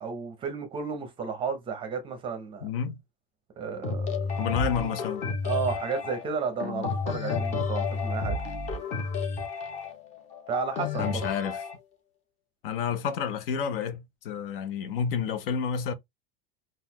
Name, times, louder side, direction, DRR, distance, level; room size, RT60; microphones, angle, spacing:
voice 1, 0.0-2.7 3.6-4.3 5.4-8.4 10.5-11.3, right 5 dB, 15° right, 0.6 m, -33 dB
voice 2, 2.6-3.0 4.4-5.2 11.0-11.6 12.6-15.9, left 7 dB, 70° left, 0.7 m, -30 dB
sound 1, 3.8-11.8, left 4 dB, 25° left, 0.7 m, -31 dB
3.9 x 2.4 x 2.9 m
supercardioid pair, 170°, 29 cm